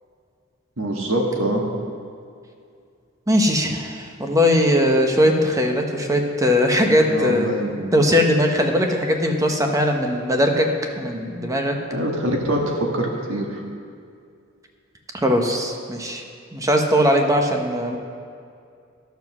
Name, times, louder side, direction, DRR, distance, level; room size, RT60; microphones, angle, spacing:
voice 1, 0.8-1.6 7.0-7.9 11.9-13.6, right 1 dB, 70° right, 0 dB, 1.6 m, -24 dB
voice 2, 3.3-10.7 11.0-11.7 15.2-16.2 16.5-18.0, equal, 15° right, 3 dB, 1.0 m, -20 dB
11.5 x 7.2 x 6.1 m, 2.3 s
head